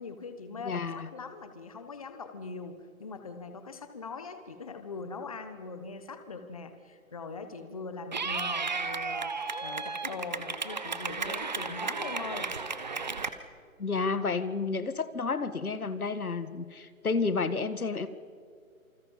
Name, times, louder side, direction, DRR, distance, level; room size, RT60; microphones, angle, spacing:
voice 1, 0.0-12.5, left 4 dB, 25° left, 8 dB, 1.1 m, -41 dB
voice 2, 0.6-1.1 13.8-18.1, left 4 dB, 85° left, 12 dB, 1.7 m, -31 dB
Clapping / Cheering, 8.1-13.3, right 4 dB, 30° right, 1.0 m, -34 dB
27.5 x 25.5 x 5.6 m, 2.1 s
hypercardioid pair, 170°, 42 cm